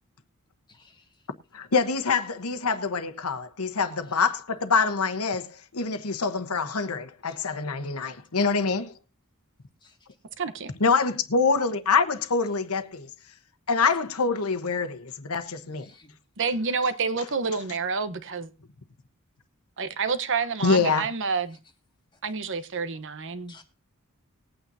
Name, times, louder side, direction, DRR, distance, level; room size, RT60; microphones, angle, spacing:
voice 1, 0.7-1.0 7.3-7.4 9.8-10.0 15.8-16.1 23.5-23.6, left 4 dB, 20° left, 1.9 m, -54 dB
voice 2, 1.5-8.9 10.8-13.1 13.7-15.9 20.6-21.1, left 4 dB, 80° left, 1.1 m, -25 dB
voice 3, 10.4-10.7 16.4-18.5 19.8-21.6 22.2-23.5, right 5 dB, 60° right, 1.0 m, -28 dB
20.0 x 9.0 x 2.7 m
head